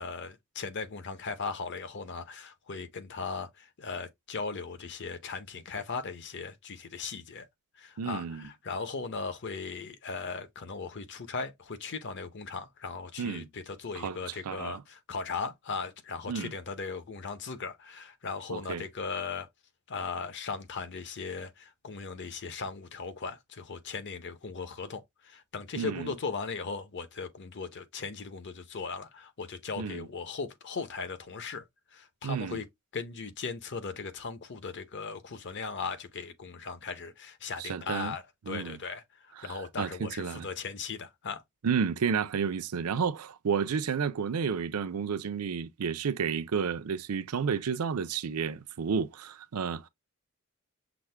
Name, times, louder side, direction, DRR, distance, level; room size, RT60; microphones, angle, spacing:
voice 1, 0.0-7.5 7.8-19.5 19.9-31.6 31.9-32.6 32.9-41.4, left 4 dB, 55° left, 0.7 m, -38 dB
voice 2, 8.0-8.5 13.2-13.5 13.9-14.8 16.3-16.5 18.5-18.8 25.7-26.1 29.8-30.1 32.2-32.6 37.6-38.1 38.5-38.8 39.4-40.5 41.6-49.9, right 6 dB, 90° right, 0.5 m, -31 dB
6.0 x 2.1 x 3.3 m
head